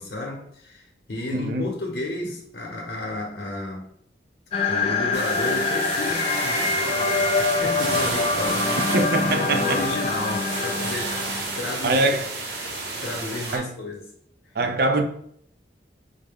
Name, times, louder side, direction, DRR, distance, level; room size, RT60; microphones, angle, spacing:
voice 1, 0.0-3.9 4.7-8.9 9.3-12.2 13.0-14.0 14.6-14.7, left 2 dB, 75° left, 0.8 m, -32 dB
voice 2, 1.3-1.7 8.9-9.8 11.8-12.3 13.5-13.7 14.6-15.0, right 2 dB, 55° right, 0.4 m, -23 dB
sound 1, 4.5-11.6, left 3 dB, 35° left, 0.4 m, -25 dB
sound 2, 5.1-13.6, right 3 dB, 80° right, 0.9 m, -31 dB
4.9 x 2.1 x 3.4 m
head